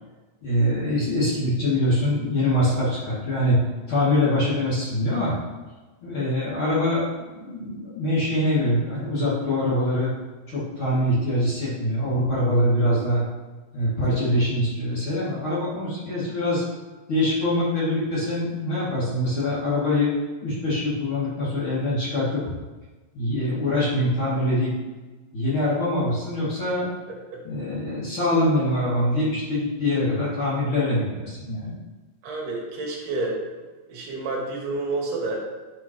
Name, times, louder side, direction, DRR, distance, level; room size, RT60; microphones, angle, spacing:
voice 1, 0.4-3.6 3.9-5.3 6.0-10.1 10.5-13.2 13.7-16.6 17.1-20.1 20.4-22.4 23.1-24.7 25.3-26.9 27.4-31.7, left 1 dB, 35° left, -10 dB, 2.6 m, -24 dB
voice 2, 27.1-27.4 32.2-33.4 33.9-35.4, right 2 dB, 70° right, -2 dB, 3.4 m, -29 dB
10.0 x 6.1 x 3.0 m, 1.3 s
omnidirectional pair, 5.0 m